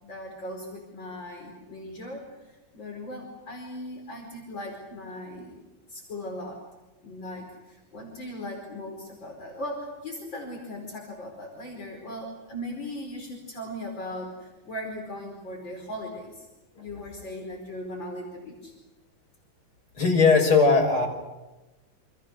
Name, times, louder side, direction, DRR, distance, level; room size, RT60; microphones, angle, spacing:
voice 1, 0.0-5.5 5.9-6.6 7.0-16.5 16.8-18.7, left 1 dB, 65° left, 0 dB, 5.6 m, -38 dB
voice 2, 20.0-21.1, left 4 dB, 85° left, 0 dB, 6.9 m, -19 dB
29.5 x 27.0 x 6.6 m, 1.1 s
omnidirectional pair, 2.2 m